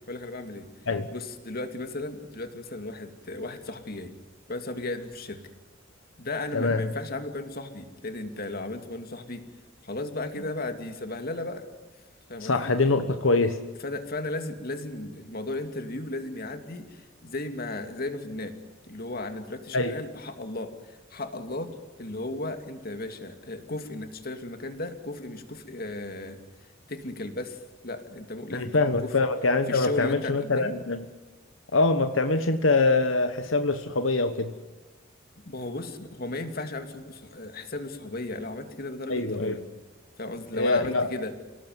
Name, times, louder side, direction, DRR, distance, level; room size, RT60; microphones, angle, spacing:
voice 1, 0.1-0.7 1.1-4.1 4.5-5.4 6.2-9.4 9.8-11.7 12.3-12.7 13.8-18.5 18.8-21.7 22.0-26.4 26.9-29.1 29.7-30.7 35.5-39.6 40.2-41.3, left 2 dB, 50° left, 7 dB, 2.5 m, -35 dB
voice 2, 12.4-13.6 19.7-19.9 28.5-31.1 31.7-34.5 39.1-39.6 40.5-41.1, left 3 dB, 85° left, 8 dB, 1.3 m, -24 dB
29.0 x 18.0 x 9.4 m, 1.1 s
head